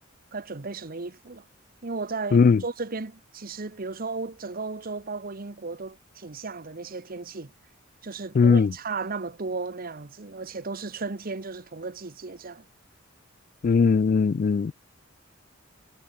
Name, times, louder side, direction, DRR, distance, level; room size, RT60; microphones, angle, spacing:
voice 1, 0.3-1.4 1.8-7.5 8.0-12.7, right 4 dB, 50° right, 1.1 m, -35 dB
voice 2, 2.3-2.6 8.3-8.7 13.6-14.7, left 5 dB, 45° left, 0.3 m, -19 dB
head